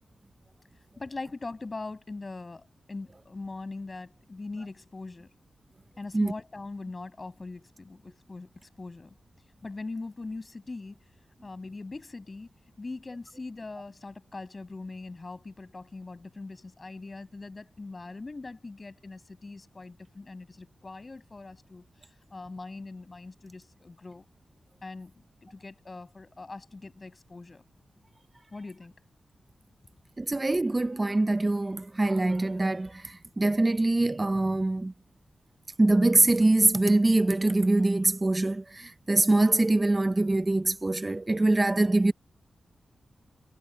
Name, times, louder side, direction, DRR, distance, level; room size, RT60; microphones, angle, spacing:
voice 1, 1.0-5.3 6.0-8.5 8.8-9.1 9.6-11.0 11.4-12.5 12.8-21.9 22.3-24.2 24.8-25.1 25.4-27.6 28.5-28.9, left 3 dB, 35° left, 7.5 m, -41 dB
voice 2, 30.2-34.9 35.8-42.1, right 2 dB, 25° right, 0.8 m, -24 dB
cardioid pair, 75°, 0 cm